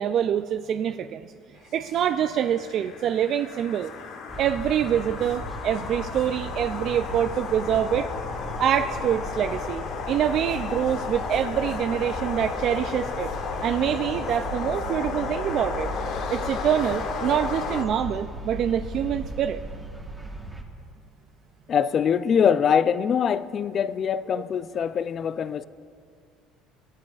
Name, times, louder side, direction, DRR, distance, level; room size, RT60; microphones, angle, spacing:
voice 1, 0.0-1.3 1.7-3.9 4.4-8.1 8.6-13.3 13.6-15.9 16.3-19.6 24.4-24.5, right 9 dB, 55° right, 0.3 m, -25 dB
sound 1, 1.7-17.8, left 5 dB, 65° left, 1.2 m, -34 dB
sound 2, 4.3-20.6, equal, 10° right, 1.2 m, -37 dB
voice 2, 21.7-25.6, left 7 dB, 40° left, 0.4 m, -23 dB
17.5 x 12.0 x 2.4 m
supercardioid pair, 105°, 0 cm